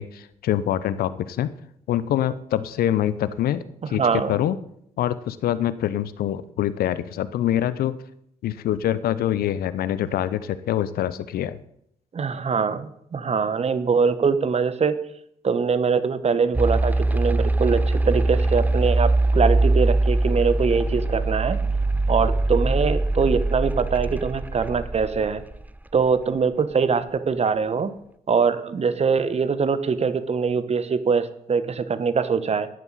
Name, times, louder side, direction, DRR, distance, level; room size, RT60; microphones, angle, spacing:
voice 1, 0.0-1.5 1.9-4.6 5.0-8.0 8.4-11.6, left 11 dB, 60° left, 16 dB, 0.7 m, -25 dB
voice 2, 3.8-4.3 12.1-15.0 15.4-21.6 22.1-25.4 25.9-27.9 28.3-32.7, right 5 dB, 35° right, 13 dB, 1.2 m, -23 dB
sound 1, 16.5-25.7, right 2 dB, 10° right, 0.6 m, -22 dB
15.0 x 11.0 x 4.1 m, 0.72 s
hypercardioid pair, 45°, 18 cm